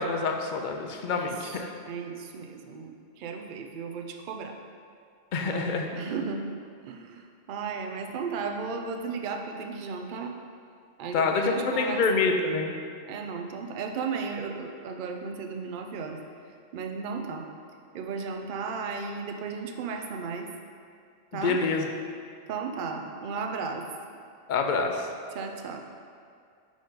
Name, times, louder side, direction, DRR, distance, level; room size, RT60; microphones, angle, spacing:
voice 1, 0.0-1.7 5.3-5.9 11.1-12.7 21.3-21.9 24.5-25.1, left 4 dB, 55° left, 3 dB, 0.6 m, -26 dB
voice 2, 1.1-1.6 1.8-4.6 5.4-6.4 6.9-10.3 11.0-12.2 13.1-16.2 16.7-17.5 17.9-20.5 21.3-21.6 22.5-23.9 25.3-25.8, right 5 dB, 60° right, 4 dB, 0.6 m, -35 dB
5.0 x 4.9 x 3.9 m, 2.3 s
omnidirectional pair, 1.1 m